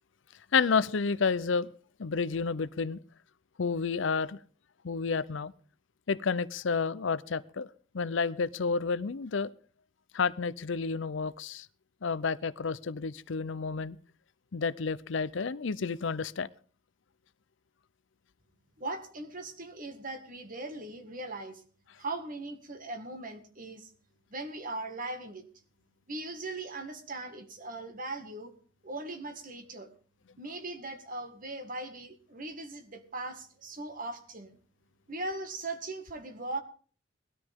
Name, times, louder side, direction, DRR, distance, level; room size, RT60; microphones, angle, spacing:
voice 1, 0.5-1.7 2.0-3.0 3.6-4.4 4.8-5.5 6.1-7.7 7.9-9.5 10.1-11.7 12.0-14.0 14.5-16.5, left 5 dB, 65° left, 18 dB, 0.6 m, -30 dB
voice 2, 18.8-21.6 22.0-23.9 24.3-25.5 26.1-28.5 28.8-29.9 30.4-34.6 35.1-36.6, right 2 dB, 45° right, 8 dB, 2.0 m, -39 dB
19.5 x 13.0 x 3.6 m, 0.42 s
head